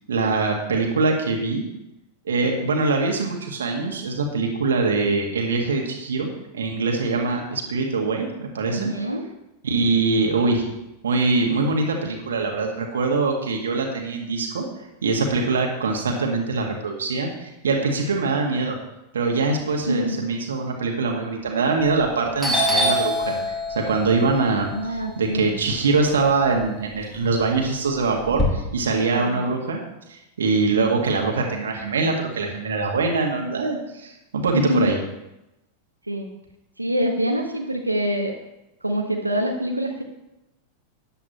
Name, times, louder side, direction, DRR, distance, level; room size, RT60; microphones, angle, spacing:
voice 1, 0.1-1.6 2.3-6.3 6.5-8.9 9.6-10.6 11.0-14.7 15.0-18.8 19.1-29.8 30.1-35.0, right 3 dB, 65° right, 1 dB, 2.0 m, -23 dB
voice 2, 8.6-9.3 19.8-20.2 24.7-25.5 29.2-29.4 34.5-34.9 36.1-36.3 36.8-38.3 38.8-40.0, equal, 85° right, 2 dB, 1.2 m, -25 dB
Doorbell, 21.8-22.1 22.4-26.5 26.9-28.4, left 1 dB, 5° left, 2.7 m, -26 dB
14.0 x 10.0 x 3.1 m, 0.92 s
figure-of-eight pair, 90°, 0 cm